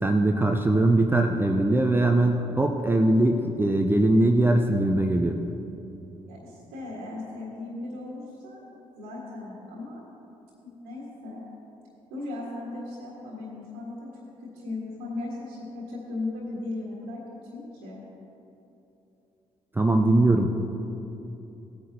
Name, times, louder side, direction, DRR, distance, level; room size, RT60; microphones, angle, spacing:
voice 1, 0.0-5.4 19.8-20.5, right 2 dB, 15° right, 3 dB, 0.6 m, -21 dB
voice 2, 6.3-8.6 8.9-10.0 10.6-11.4 12.1-17.2 17.5-18.0, left 2 dB, 75° right, -5 dB, 1.7 m, -37 dB
17.0 x 9.2 x 2.8 m, 2.9 s
figure-of-eight pair, 45°, 17 cm